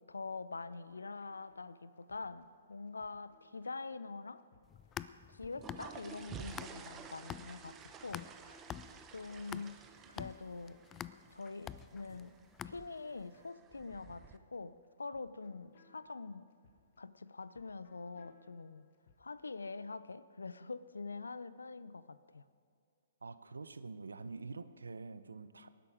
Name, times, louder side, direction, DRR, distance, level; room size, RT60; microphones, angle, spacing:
voice 1, 0.0-4.4 5.3-8.3 9.1-9.8 10.1-10.8 11.3-12.3 12.7-16.5 17.0-18.9 19.2-22.4, left 4 dB, 85° left, 15 dB, 0.6 m, -45 dB
sound 1, 0.9-19.5, left 5 dB, 55° left, 1.6 m, -69 dB
sound 2, 4.6-7.0 7.3-13.2, left 10 dB, 20° left, 0.3 m, -47 dB
sound 3, 5.3-14.4, right 6 dB, 20° right, 0.9 m, -52 dB
voice 2, 23.2-25.7, right 4 dB, 85° right, 13 dB, 0.7 m, -46 dB
18.5 x 11.0 x 5.1 m, 2.2 s
hypercardioid pair, 130°, 0 cm